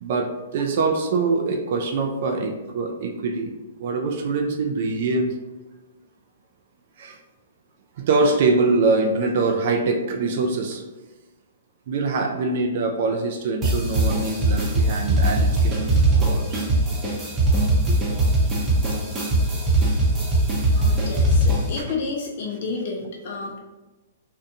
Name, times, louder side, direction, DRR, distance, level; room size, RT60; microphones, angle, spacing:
voice 1, 0.0-3.5 3.8-5.4 7.0-7.2 8.0-10.8 11.9-16.7 17.9-18.0 21.0-21.1 21.8-21.9, right 3 dB, 55° right, 4 dB, 0.3 m, -24 dB
sound 1, 13.6-21.8, right 1 dB, 20° right, 0.7 m, -21 dB
voice 2, 20.8-23.6, left 4 dB, 55° left, -1 dB, 0.4 m, -31 dB
2.5 x 2.2 x 2.7 m, 1.1 s
hypercardioid pair, 140°, 0 cm